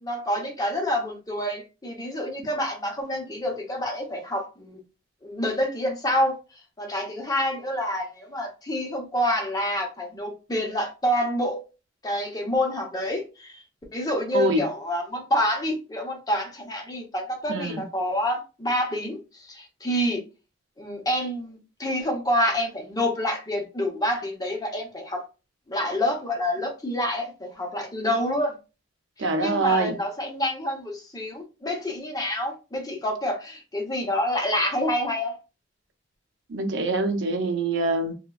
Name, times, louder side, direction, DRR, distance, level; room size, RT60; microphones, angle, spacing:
voice 1, 0.0-4.8 5.2-6.4 6.8-11.6 12.0-13.6 13.9-20.2 20.8-25.2 25.7-28.5 29.4-35.4, left 1 dB, 20° left, 0.7 m, -27 dB
voice 2, 14.3-14.7 17.5-17.9 29.2-30.0 36.5-38.1, right 2 dB, 90° right, 0.5 m, -24 dB
3.2 x 2.1 x 2.3 m
head